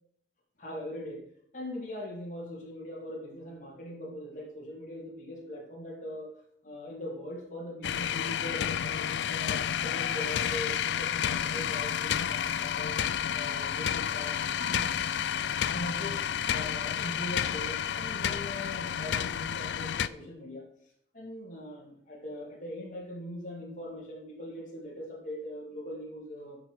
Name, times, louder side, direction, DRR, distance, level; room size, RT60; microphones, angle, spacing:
voice 1, 0.6-6.3 6.6-13.0 13.3-14.9 15.7-20.7 21.1-26.6, left 1 dB, 45° left, -2 dB, 2.4 m, -41 dB
sound 1, 7.8-20.1, left 9 dB, 85° left, 0.4 m, -30 dB
12.0 x 5.9 x 4.8 m, 0.66 s
head